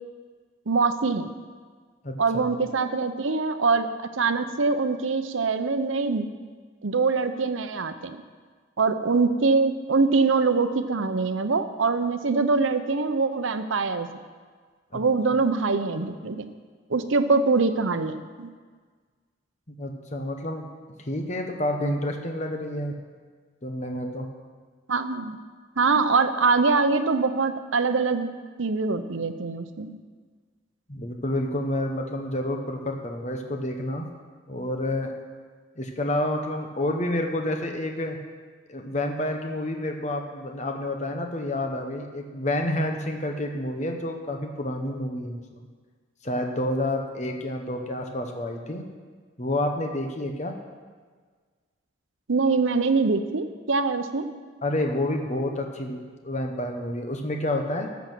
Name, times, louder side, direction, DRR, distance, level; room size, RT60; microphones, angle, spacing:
voice 1, 0.7-1.3 2.2-3.9 4.2-6.3 6.8-8.2 8.8-14.1 14.9-16.5 16.9-18.5 24.9-25.4 25.8-28.3 28.6-30.0 52.3-54.3, right 4 dB, 80° right, 10 dB, 0.8 m, -23 dB
voice 2, 2.0-2.4 14.9-15.0 19.7-20.7 21.1-23.0 23.6-24.3 30.9-34.1 34.5-35.1 35.8-38.2 38.7-45.7 46.2-48.8 49.4-50.5 54.6-57.9, left 1 dB, 35° left, 3 dB, 1.1 m, -29 dB
13.5 x 7.2 x 6.2 m, 1.5 s
head